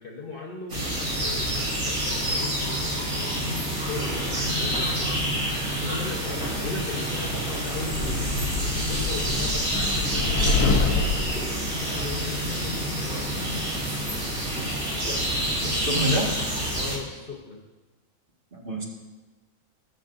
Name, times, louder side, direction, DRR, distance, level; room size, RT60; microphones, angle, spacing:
voice 1, 0.0-5.2 5.7-14.0 16.7-17.6, left 4 dB, 40° left, -1 dB, 1.2 m, -38 dB
sound 1, 0.7-17.0, equal, 75° right, 3.3 m, -28 dB
sound 2, 7.7-11.4, left 3 dB, 85° left, 1.4 m, -26 dB
voice 2, 15.6-16.3 18.5-18.8, right 1 dB, 35° right, -3 dB, 2.0 m, -28 dB
20.0 x 7.2 x 2.6 m, 1.2 s
omnidirectional pair, 1.5 m